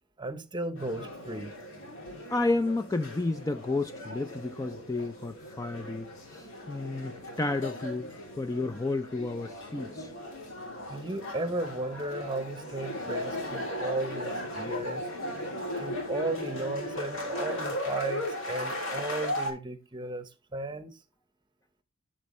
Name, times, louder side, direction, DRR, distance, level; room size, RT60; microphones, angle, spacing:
voice 1, 0.2-1.5 10.9-15.1 15.8-21.0, right 2 dB, 20° right, 0.8 m, -35 dB
sound 1, 0.8-19.5, left 1 dB, 60° left, 2.7 m, -37 dB
voice 2, 2.3-8.1 8.4-10.1, left 2 dB, 15° left, 0.3 m, -31 dB
12.5 x 4.4 x 3.1 m
head